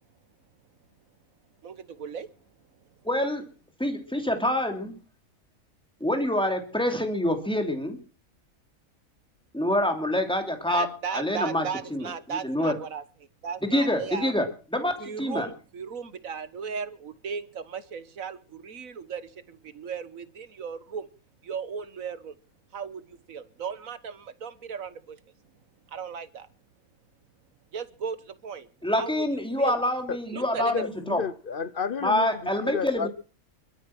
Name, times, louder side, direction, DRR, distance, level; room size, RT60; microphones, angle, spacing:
voice 1, 1.6-2.3 10.7-13.0 13.4-14.3 15.0-21.1 21.4-22.3 22.7-25.2 25.9-26.5 27.7-28.7 29.0-29.2 29.6-29.8 30.3-30.8, right 6 dB, 75° right, 1.6 m, -36 dB
voice 2, 3.0-3.4 3.8-4.9 6.0-8.0 9.5-11.7 11.9-12.7 13.6-14.5 14.7-14.9 15.2-15.5 28.8-31.2 32.0-33.1, left 1 dB, 5° left, 3.0 m, -26 dB
voice 3, 30.1-33.1, left 5 dB, 45° left, 1.0 m, -32 dB
23.0 x 9.6 x 6.0 m
omnidirectional pair, 1.4 m